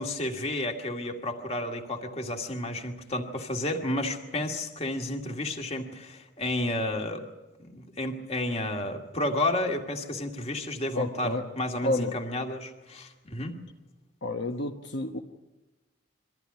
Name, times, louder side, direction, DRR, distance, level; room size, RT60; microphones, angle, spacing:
voice 1, 0.0-7.2 7.6-13.6, left 1 dB, 30° left, 3 dB, 2.1 m, -31 dB
voice 2, 10.9-11.4 11.8-12.2 14.2-15.2, left 2 dB, 60° left, 3 dB, 1.1 m, -30 dB
24.0 x 15.0 x 9.7 m, 1.1 s
head